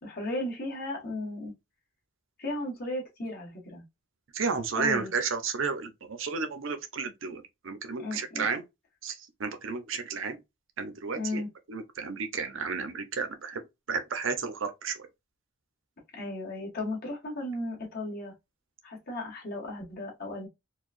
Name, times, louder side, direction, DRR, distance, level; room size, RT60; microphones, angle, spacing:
voice 1, 0.0-1.5 2.4-3.8 4.7-5.1 8.0-8.5 11.2-11.5 16.1-18.3 18.8-20.5, left 1 dB, 50° left, 1.8 m, -35 dB
voice 2, 4.3-8.6 9.0-10.4 10.8-11.4 11.7-13.6 13.9-15.1, right 5 dB, 65° right, 0.7 m, -32 dB
4.6 x 2.3 x 2.5 m
head